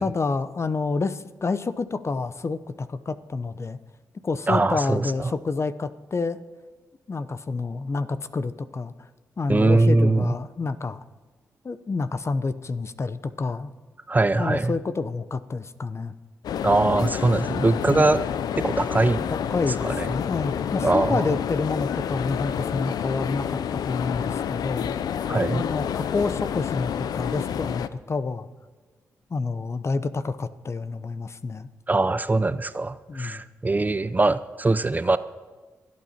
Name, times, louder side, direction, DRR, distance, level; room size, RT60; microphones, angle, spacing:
voice 1, 0.0-3.8 4.2-6.4 7.1-9.1 9.4-11.0 11.6-13.7 14.3-16.1 17.9-18.1 19.3-25.0 25.5-28.5 29.3-31.7 33.1-33.4, left 4 dB, 40° left, 13 dB, 0.8 m, -28 dB
voice 2, 4.5-5.3 9.5-10.3 14.1-14.7 16.6-18.2 18.6-19.3 19.8-20.1 20.8-21.3 25.3-25.6 31.9-35.2, right 2 dB, 25° right, 14 dB, 0.6 m, -22 dB
sound 1, 16.4-27.9, left 8 dB, 75° left, 0.5 m, -29 dB
25.5 x 8.6 x 4.4 m, 1.3 s
supercardioid pair, 50°, 7 cm